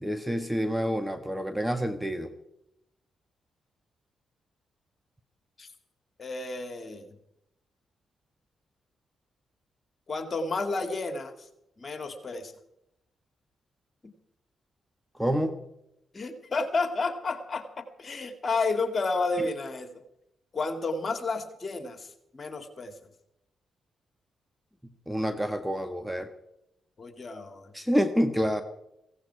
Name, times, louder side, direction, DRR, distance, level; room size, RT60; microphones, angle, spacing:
voice 1, 0.0-2.3 15.2-15.5 25.1-26.3 27.7-28.6, equal, 5° right, 8 dB, 1.4 m, -27 dB
voice 2, 6.2-7.1 10.1-11.3 11.8-12.5 16.1-19.9 20.5-22.1 22.3-22.9 27.0-27.7, left 3 dB, 40° left, 7 dB, 2.4 m, -31 dB
16.5 x 16.5 x 4.8 m, 0.83 s
hypercardioid pair, 45°, 0 cm